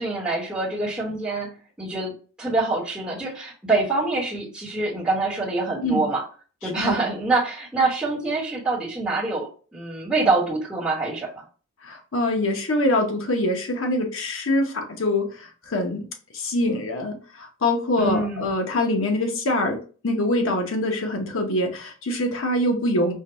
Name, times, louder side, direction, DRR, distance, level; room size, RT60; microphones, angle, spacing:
voice 1, 0.0-1.5 1.8-6.2 6.6-11.4 18.0-18.4, right 3 dB, 5° right, -8 dB, 1.1 m, -25 dB
voice 2, 11.8-16.0 16.3-23.1, left 1 dB, 75° left, 3 dB, 0.8 m, -24 dB
4.5 x 2.2 x 3.0 m, 0.38 s
head